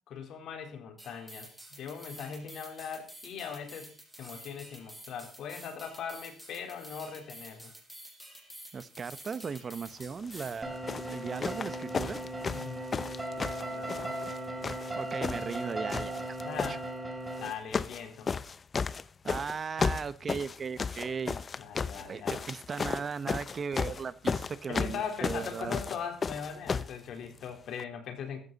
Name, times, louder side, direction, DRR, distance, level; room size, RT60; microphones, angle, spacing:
voice 1, 0.1-7.7 12.5-12.8 13.6-14.2 16.4-16.8 17.4-18.3 21.6-22.4 24.7-28.4, left 7 dB, 65° left, 4 dB, 3.9 m, -40 dB
sound 1, 1.0-10.6, right 1 dB, ahead, 6.7 m, -50 dB
voice 2, 8.7-10.8 11.1-12.2 15.0-16.4 16.7-16.8 19.2-21.4 22.0-25.8, right 5 dB, 35° right, 15 dB, 1.0 m, -37 dB
sound 2, 10.2-10.5 10.9-14.4 14.6-15.6 15.9-16.7 17.4-18.0 18.3-27.0 27.8-27.9, left 5 dB, 30° left, 0.6 m, -34 dB
sound 3, 10.6-17.5, right 1 dB, 15° right, 3.2 m, -37 dB
14.5 x 14.0 x 4.1 m, 0.39 s
cardioid pair, 120°, 0 cm